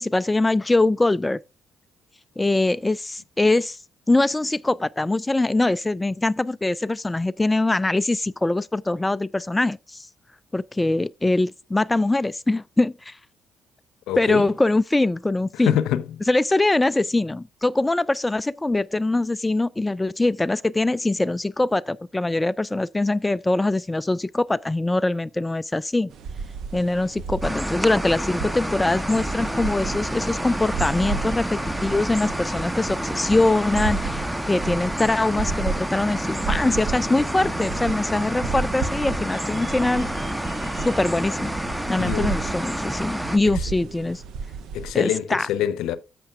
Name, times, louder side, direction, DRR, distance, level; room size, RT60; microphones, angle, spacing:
voice 1, 0.0-1.4 2.4-3.8 4.1-10.1 10.5-13.2 14.2-15.8 16.3-26.1 26.7-40.1 40.8-41.5 41.9-44.2 44.9-45.5, left 2 dB, 15° left, 0.3 m, -23 dB
voice 2, 14.1-14.4 15.5-16.1 42.0-42.4 43.5-43.7 44.7-46.0, left 11 dB, 65° left, 0.7 m, -25 dB
sound 1, 26.1-44.9, right 5 dB, 60° right, 0.9 m, -33 dB
sound 2, 27.4-43.4, right 1 dB, 5° right, 0.9 m, -29 dB
14.0 x 5.9 x 2.4 m
figure-of-eight pair, 45°, 0 cm